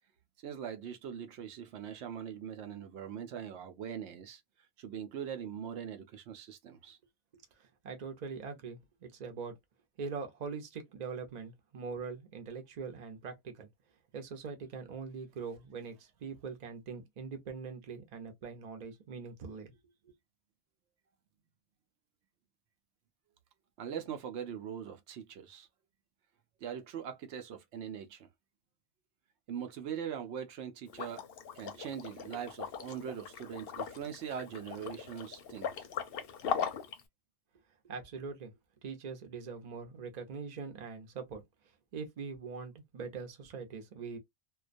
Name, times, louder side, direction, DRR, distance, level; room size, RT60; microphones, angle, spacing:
voice 1, 0.4-4.4 4.8-7.0 23.8-25.7 26.6-28.3 29.5-31.2 31.5-35.8, right 8 dB, 80° right, 0.8 m, -41 dB
voice 2, 7.8-9.5 10.0-13.7 14.1-19.7 20.0-20.1 37.9-38.5 38.8-41.4 41.9-44.2, right 5 dB, 45° right, 0.7 m, -42 dB
Liquid, 30.9-37.0, left 7 dB, 65° left, 0.7 m, -39 dB
2.3 x 2.2 x 2.4 m
omnidirectional pair, 1.1 m